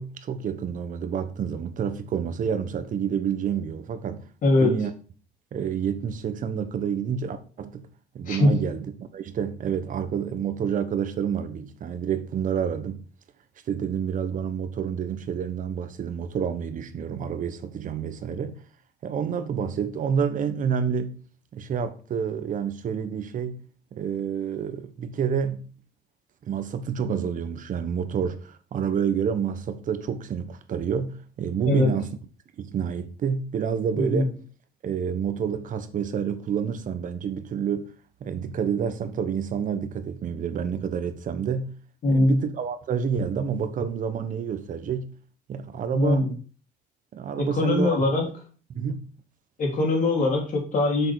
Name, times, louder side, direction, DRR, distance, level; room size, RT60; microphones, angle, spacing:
voice 1, 0.0-4.3 4.6-4.9 5.5-7.9 8.1-13.0 13.7-18.6 19.0-21.2 21.5-23.6 23.9-25.7 26.4-32.1 32.6-34.4 34.8-37.9 38.2-41.7 42.1-45.1 45.5-46.3 47.1-48.0 48.7-49.0, right 7 dB, 50° right, 1.1 m, -28 dB
voice 2, 4.4-4.7 8.3-8.6 31.6-31.9 34.0-34.3 42.0-42.4 45.9-46.3 47.4-48.3 49.6-51.1, left 2 dB, 50° left, 3.5 m, -22 dB
6.9 x 6.6 x 4.8 m
cardioid pair, 110°, 17 cm